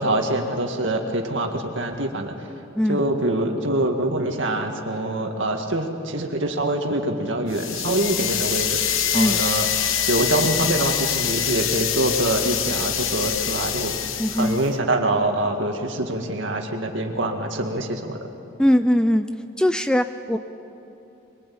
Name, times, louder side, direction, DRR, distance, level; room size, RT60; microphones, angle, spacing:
voice 1, 0.0-2.3 2.9-8.7 9.1-9.7 10.1-13.9 14.3-18.3, right 1 dB, 65° right, 3 dB, 2.1 m, -24 dB
sound 1, 7.5-14.7, left 9 dB, 75° left, 1.1 m, -25 dB
voice 2, 14.2-14.7 18.6-19.3 19.6-20.4, equal, 5° left, 9 dB, 0.4 m, -20 dB
23.0 x 22.0 x 8.7 m, 2.9 s
head